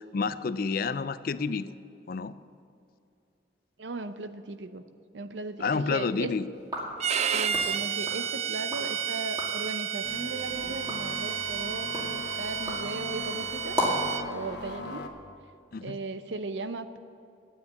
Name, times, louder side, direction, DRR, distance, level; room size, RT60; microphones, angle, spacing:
voice 1, 0.0-1.7 2.1-2.3 5.6-6.5 15.7-16.0, left 4 dB, 50° left, 14 dB, 0.4 m, -29 dB
voice 2, 3.8-4.8 5.1-6.4 7.3-13.8 14.3-15.0 15.8-17.0, right 3 dB, 80° right, 11 dB, 0.7 m, -37 dB
sound 1, 6.6-8.9 9.2-9.7 10.2-14.2, equal, 20° right, 2.2 m, -36 dB
Bowed string instrument, 7.0-14.3, right 8 dB, 35° right, 0.3 m, -31 dB
sound 2, 10.0-15.1, left 2 dB, 70° left, 1.1 m, -40 dB
9.7 x 8.9 x 8.1 m, 2.6 s
head